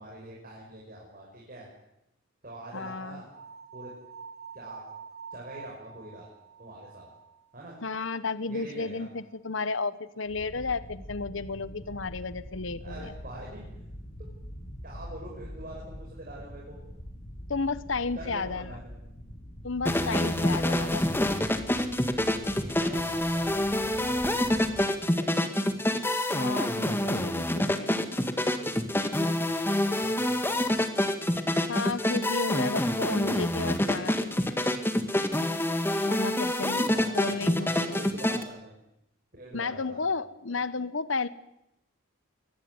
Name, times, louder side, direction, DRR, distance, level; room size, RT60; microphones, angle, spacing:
voice 1, 0.0-1.7 2.4-3.3 3.7-3.9 4.5-4.8 5.3-6.3 6.6-7.1 7.5-7.8 8.5-9.1 12.8-13.6 14.2-14.3 14.8-16.8 18.1-19.0 20.0-20.8 22.6-25.3 29.0-30.8 36.6-38.8 39.3-40.1, right 1 dB, 45° right, -3 dB, 6.1 m, -45 dB
voice 2, 2.7-3.2 7.8-13.1 17.5-18.8 19.6-21.0 26.3-28.1 31.7-34.4 36.0-38.1 39.5-41.3, left 4 dB, 65° left, 15 dB, 1.1 m, -33 dB
sound 1, 3.3-8.4, right 6 dB, 80° right, 5.3 m, -47 dB
sound 2, 10.2-24.9, equal, 45° left, 4.5 m, -44 dB
sound 3, 19.8-38.4, left 1 dB, 10° left, 1.8 m, -27 dB
23.5 x 18.5 x 9.7 m, 0.85 s
head